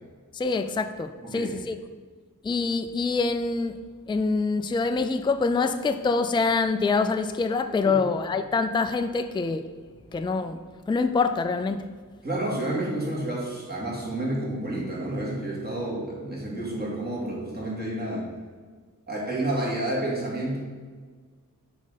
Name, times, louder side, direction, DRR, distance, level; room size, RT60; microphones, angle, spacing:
voice 1, 0.3-1.8 2.4-3.8 4.1-9.7 10.1-11.8, left 4 dB, 15° left, 0.3 m, -25 dB
voice 2, 12.2-18.2 19.1-20.6, right 1 dB, 30° right, 2.5 m, -30 dB
6.4 x 5.1 x 5.7 m
wide cardioid pair, 100°, 33 cm